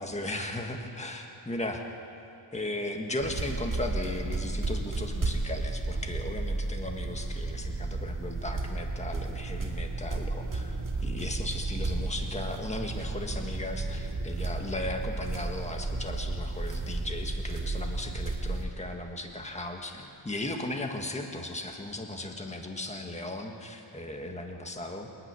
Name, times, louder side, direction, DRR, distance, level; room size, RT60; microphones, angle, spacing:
voice 1, 0.0-1.8 2.5-25.1, left 1 dB, 15° left, 3 dB, 1.6 m, -36 dB
sound 1, 3.2-18.6, right 2 dB, 40° right, 2.2 m, -33 dB
28.5 x 9.7 x 9.6 m, 2.9 s
wide cardioid pair, 150°, 50 cm